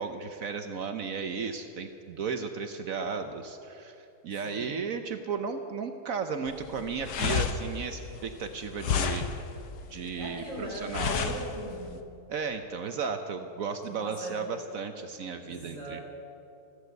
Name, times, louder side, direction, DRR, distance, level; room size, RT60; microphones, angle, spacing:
voice 1, 0.0-9.3 9.9-11.3 12.3-16.0, right 5 dB, 60° right, 7 dB, 1.1 m, -34 dB
voice 2, 4.3-4.7 9.8-9.9 10.2-11.9 13.9-14.4 15.4-16.0, equal, 50° left, -3 dB, 4.3 m, -39 dB
sound 1, 6.5-12.0, left 7 dB, 85° left, 1.5 m, -32 dB
14.0 x 13.0 x 8.0 m, 2.7 s
omnidirectional pair, 1.8 m